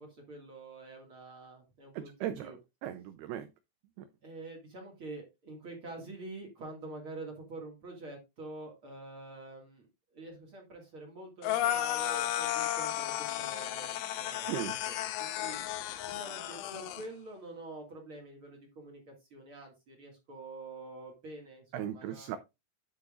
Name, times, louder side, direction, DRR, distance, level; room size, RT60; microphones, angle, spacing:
voice 1, 0.0-2.6 4.2-9.9 10.1-15.6 16.1-22.4, right 2 dB, 45° right, 0 dB, 1.8 m, -47 dB
voice 2, 1.9-2.5 2.8-3.5 4.0-4.1 14.5-14.8 21.7-22.4, right 11 dB, 85° right, 9 dB, 2.2 m, -37 dB
sound 1, 11.4-17.0, left 12 dB, 85° left, 3.3 m, -34 dB
9.7 x 8.5 x 2.5 m, 0.23 s
omnidirectional pair, 5.4 m